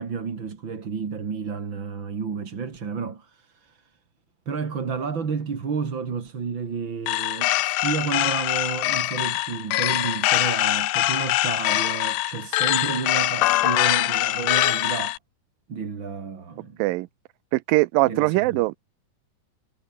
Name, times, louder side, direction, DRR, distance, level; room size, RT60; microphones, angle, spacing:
voice 1, 0.0-3.9 4.5-15.2 15.7-16.8 18.0-18.6, right 5 dB, 35° right, 2.9 m, -31 dB
sound 1, 7.1-15.2, left 16 dB, 80° left, 2.7 m, -23 dB
voice 2, 17.5-18.8, right 19 dB, 85° right, 2.3 m, -21 dB
omnidirectional pair, 4.1 m